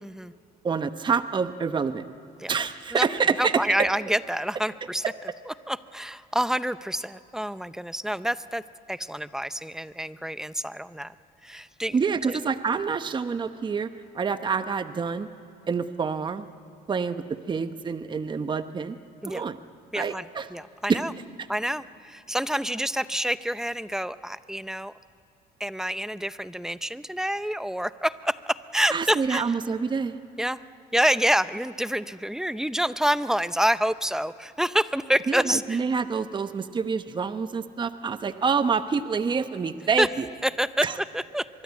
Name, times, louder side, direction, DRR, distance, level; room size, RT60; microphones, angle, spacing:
voice 1, 0.0-0.3 2.4-2.5 2.9-3.1 3.4-5.0 5.5-8.6 8.9-11.1 11.4-12.0 12.2-12.4 19.2-19.4 19.9-20.2 20.5-21.1 21.5-24.9 25.6-29.5 30.4-30.6 30.9-35.8 40.0-40.1 40.4-40.9 41.1-41.5, equal, 5° right, 14 dB, 0.6 m, -27 dB
voice 2, 0.6-2.0 2.5-3.9 11.9-13.9 14.1-15.3 15.7-16.4 16.9-19.0 19.2-19.6 19.9-20.5 20.9-21.0 28.9-30.2 35.3-40.3 40.8-41.0, right 5 dB, 25° right, 10 dB, 0.9 m, -27 dB
24.0 x 22.5 x 8.3 m, 2.9 s
cardioid pair, 110°, 17 cm